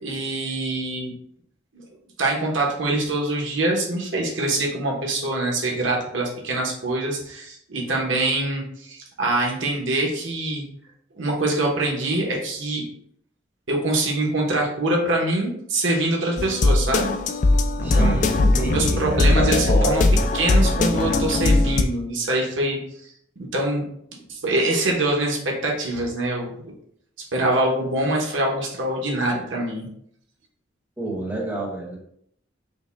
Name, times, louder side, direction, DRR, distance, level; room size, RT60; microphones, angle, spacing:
voice 1, 0.0-1.1 2.2-10.6 11.2-12.8 13.7-17.1 17.8-18.2 18.6-20.1 20.3-23.1 23.5-23.9 24.3-26.6 27.3-29.9, right 2 dB, 90° right, -1 dB, 1.1 m, -24 dB
sound 1, 16.4-21.8, left 2 dB, 40° left, 0.4 m, -19 dB
voice 2, 17.8-20.0 31.0-32.0, right 2 dB, 10° right, -4 dB, 1.1 m, -29 dB
5.2 x 2.2 x 3.4 m, 0.69 s
head